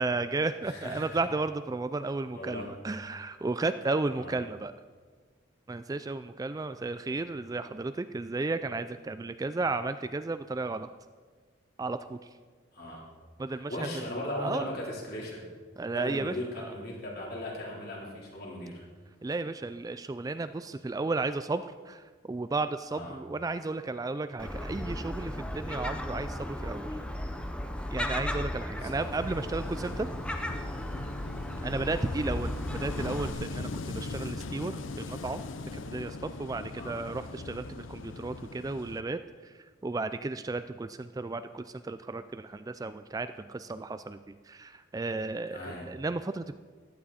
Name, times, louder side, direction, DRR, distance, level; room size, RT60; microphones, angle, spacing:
voice 1, 0.0-4.7 5.7-10.9 11.8-12.2 13.4-13.9 14.3-14.7 15.8-16.7 19.2-26.9 27.9-30.1 31.6-32.5 32.8-35.4 35.7-39.5 39.8-46.6, right 3 dB, 20° right, 11 dB, 0.3 m, -33 dB
voice 2, 0.6-1.2 2.3-2.7 4.1-4.4 12.7-13.1 13.5-15.5 15.9-18.8 22.9-23.2 28.7-29.1 36.8-37.0 45.5-45.9, left 1 dB, 55° left, -3 dB, 3.7 m, -38 dB
Gull seagull, 24.4-33.3, left 1 dB, 5° left, 0.7 m, -35 dB
Wind / Waves surf, 29.0-39.0, left 3 dB, 75° left, 0.6 m, -40 dB
16.0 x 12.0 x 4.2 m, 1.5 s
head